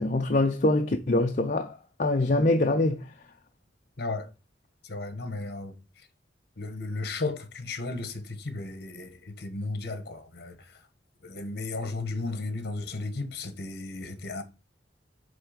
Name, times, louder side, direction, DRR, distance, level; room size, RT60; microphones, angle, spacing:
voice 1, 0.0-3.1, left 2 dB, 40° left, 0.6 m, -24 dB
voice 2, 4.0-4.3 4.8-6.1 6.6-10.8 11.2-14.4, left 3 dB, 55° left, 1.3 m, -35 dB
9.2 x 3.3 x 5.1 m
head